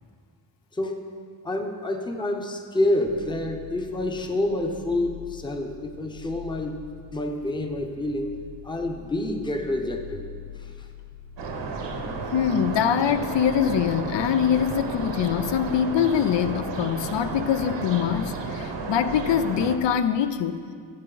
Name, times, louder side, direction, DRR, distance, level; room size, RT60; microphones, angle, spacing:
voice 1, 1.4-6.8 7.1-8.3 8.6-10.3 10.6-10.9, left 1 dB, 10° left, 4 dB, 0.7 m, -28 dB
sound 1, 3.1-19.6, left 8 dB, 45° left, 0.8 m, -44 dB
sound 2, 11.4-19.8, right 4 dB, 75° right, 1.1 m, -33 dB
voice 2, 12.3-20.6, left 9 dB, 80° left, 11 dB, 0.6 m, -23 dB
15.0 x 7.3 x 3.9 m, 2.1 s
wide cardioid pair, 150°, 43 cm